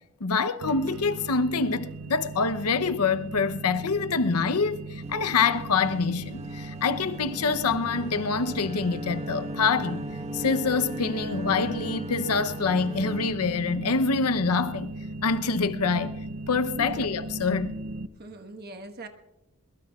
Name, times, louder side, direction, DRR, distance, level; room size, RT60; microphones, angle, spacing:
voice 1, 0.2-10.1 10.3-14.9 15.2-16.1 16.5-17.7, left 4 dB, 85° left, 0.7 m, -26 dB
sound 1, 0.6-18.1, right 2 dB, 80° right, 0.7 m, -38 dB
sound 2, 5.0-13.3, right 1 dB, 30° right, 1.0 m, -40 dB
voice 2, 18.2-19.1, right 2 dB, 45° right, 1.3 m, -41 dB
22.0 x 22.0 x 2.4 m
head